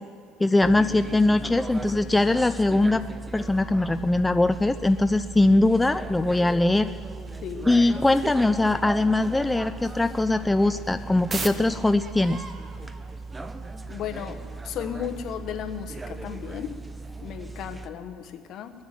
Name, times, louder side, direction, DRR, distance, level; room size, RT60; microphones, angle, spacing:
voice 1, 0.4-3.0 3.3-6.9 7.7-12.4, left 2 dB, 10° left, 10 dB, 0.4 m, -21 dB
sound 1, 0.6-17.9, right 3 dB, 15° right, 0.7 m, -38 dB
sound 2, 1.7-8.4 8.7-8.8 9.2-17.3, right 4 dB, 30° right, 1.2 m, -45 dB
voice 2, 7.4-7.8 13.9-14.4 14.6-16.7 17.2-18.7, left 9 dB, 60° left, 7 dB, 1.1 m, -34 dB
21.0 x 7.2 x 7.4 m, 2.3 s
supercardioid pair, 100°, 0 cm